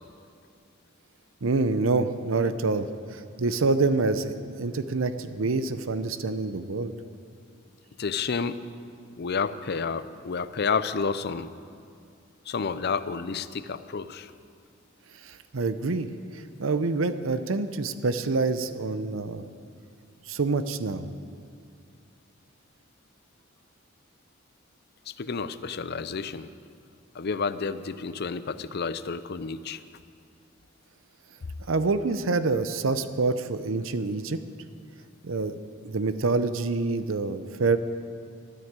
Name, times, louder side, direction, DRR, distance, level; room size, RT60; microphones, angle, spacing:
voice 1, 1.4-6.9 15.2-16.1 16.6-19.4 20.3-21.1 31.7-34.4 35.2-35.5 35.8-37.8, right 3 dB, 85° right, 11 dB, 0.7 m, -26 dB
voice 2, 8.0-8.6 9.2-11.5 12.5-14.3 25.1-26.5 27.1-29.8, left 5 dB, 55° left, 13 dB, 0.6 m, -30 dB
13.5 x 9.6 x 8.8 m, 2.3 s
head